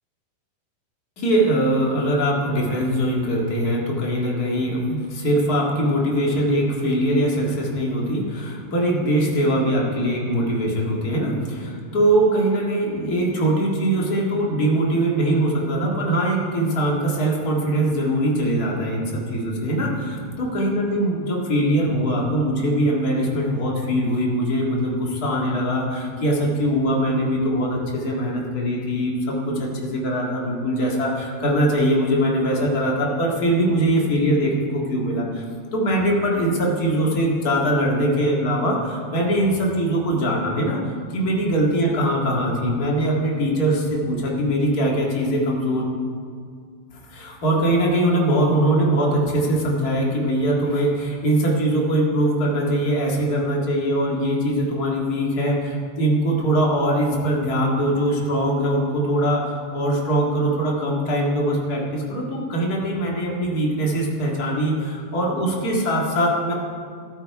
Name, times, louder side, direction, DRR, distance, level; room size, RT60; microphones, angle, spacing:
voice 1, 1.2-35.4 35.7-40.8 41.1-45.8 47.1-66.5, right 1 dB, 50° left, -2 dB, 1.1 m, -22 dB
14.0 x 13.0 x 4.7 m, 2.1 s
omnidirectional pair, 4.8 m